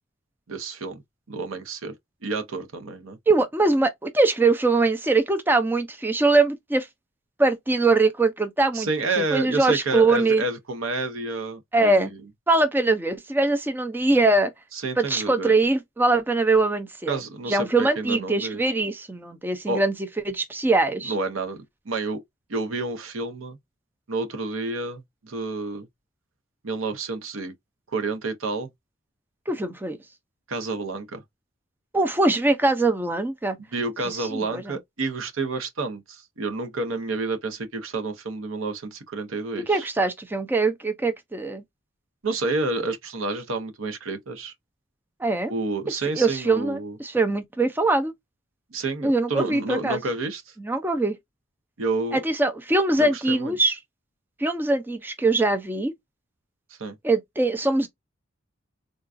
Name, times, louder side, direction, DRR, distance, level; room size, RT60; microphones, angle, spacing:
voice 1, 0.5-1.0 1.3-1.9 2.2-3.2 8.7-12.2 14.7-15.5 17.1-18.6 19.7-19.8 21.0-21.6 21.9-22.2 22.5-23.6 24.1-25.9 26.6-27.5 27.9-28.7 30.5-31.2 33.7-39.9 42.2-44.5 45.5-47.0 48.7-50.4 51.8-52.2 53.0-53.5 56.8-57.0, right 3 dB, 85° right, 0.8 m, -29 dB
voice 2, 3.3-6.9 7.4-8.9 9.3-10.4 11.7-12.1 12.5-14.5 15.0-17.2 17.5-19.9 20.3-21.1 29.5-30.0 31.9-33.6 34.1-34.7 39.7-41.6 45.2-45.5 45.9-48.1 49.0-50.0 50.6-51.2 52.1-53.8 54.4-55.9 57.0-57.9, right 3 dB, 10° right, 0.4 m, -22 dB
3.8 x 2.3 x 2.5 m
head